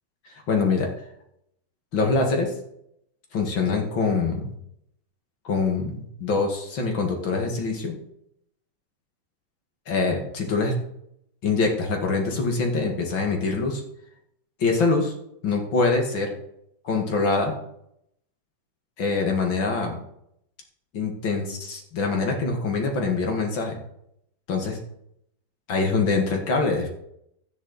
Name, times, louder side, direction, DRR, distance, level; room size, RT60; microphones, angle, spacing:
voice 1, 0.5-0.9 1.9-2.5 3.3-4.5 5.4-8.0 9.9-10.7 11.4-13.8 14.6-15.1 15.4-16.3 16.8-17.5 19.0-20.0 20.9-23.8 24.5-24.8 25.7-26.9, left 4 dB, 75° left, 2 dB, 2.7 m, -24 dB
12.5 x 9.8 x 4.1 m, 0.77 s
omnidirectional pair, 2.1 m